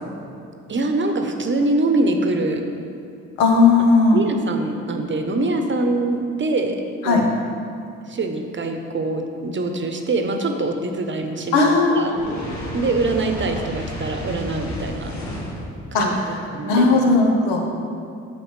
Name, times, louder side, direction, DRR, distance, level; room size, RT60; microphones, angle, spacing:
voice 1, 0.7-2.6 4.1-6.8 7.0-7.2 8.1-12.1 12.7-15.1 15.9-16.1 16.5-16.9, right 2 dB, 35° right, 5 dB, 0.8 m, -24 dB
voice 2, 3.4-4.2 7.0-7.3 11.5-12.1 15.9-16.4 16.7-17.7, left 3 dB, 90° left, 1 dB, 0.8 m, -16 dB
Fire, 12.0-15.7, left 1 dB, 55° left, 1.6 m, -31 dB
7.9 x 5.7 x 3.2 m, 2.5 s
hypercardioid pair, 50°, 34 cm